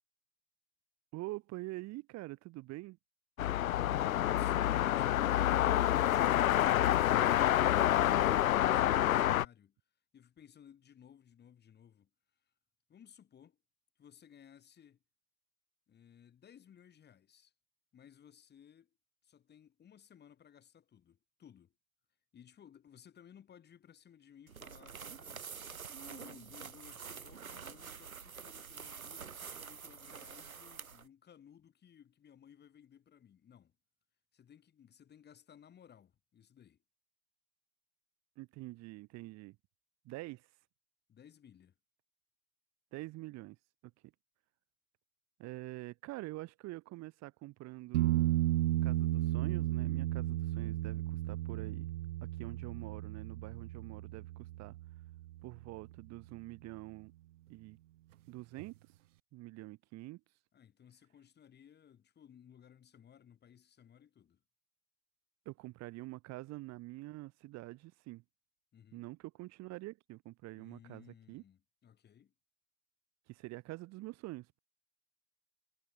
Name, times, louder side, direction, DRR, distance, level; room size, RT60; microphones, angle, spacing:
voice 1, 1.1-3.0 38.4-39.6 40.0-40.5 42.9-43.6 43.8-43.9 45.4-48.3 48.8-51.9 52.2-54.8 55.4-57.1 57.5-57.8 58.3-58.8 59.3-60.2 65.5-68.2 68.9-71.4 73.3-74.6, right 19 dB, 40° right, 5.7 m, -46 dB
sound 1, 3.4-9.5, left 12 dB, 80° left, 0.5 m, -28 dB
voice 2, 7.2-9.8 10.1-12.5 12.9-13.6 14.0-15.0 15.9-17.5 17.9-18.9 19.2-21.7 22.3-25.5 25.8-33.7 34.3-36.8 41.1-41.7 60.5-64.4 68.7-69.1 70.6-72.3, left 9 dB, 25° left, 6.8 m, -59 dB
sound 2, 24.5-31.1, right 6 dB, 85° right, 2.0 m, -47 dB
sound 3, 47.9-55.6 58.6-58.7, right 15 dB, 65° right, 0.5 m, -34 dB
figure-of-eight pair, 100°, 41 cm